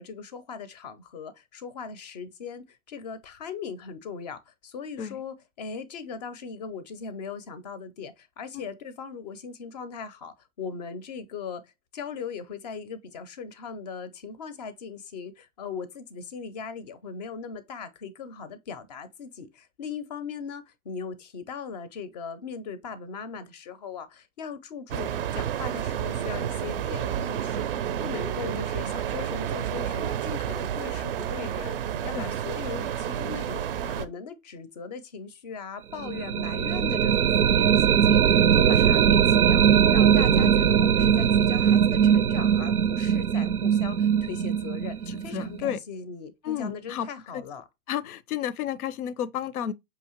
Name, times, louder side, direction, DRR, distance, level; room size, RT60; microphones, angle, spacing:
voice 1, 0.0-11.6 11.9-45.0 45.2-47.6, left 5 dB, 30° left, 0.4 m, -39 dB
sound 1, 24.9-34.0, right 9 dB, 45° right, 0.4 m, -30 dB
sound 2, 36.0-45.8, right 8 dB, 90° right, 0.6 m, -21 dB
voice 2, 45.1-45.8 46.4-47.1 47.3-47.4 47.9-49.7, left 9 dB, 80° left, 0.6 m, -32 dB
5.1 x 2.8 x 2.9 m
hypercardioid pair, 135°, 43 cm